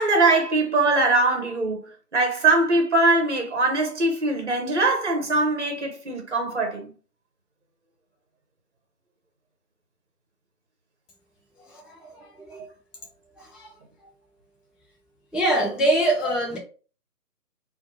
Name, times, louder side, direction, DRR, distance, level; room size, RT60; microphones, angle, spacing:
voice 1, 0.0-1.8 2.1-6.9, right 2 dB, 45° right, 0.9 m, -22 dB
voice 2, 11.6-12.7 13.4-13.7 15.3-16.6, right 1 dB, ahead, 0.3 m, -25 dB
2.5 x 2.2 x 2.8 m
figure-of-eight pair, 155°, 48 cm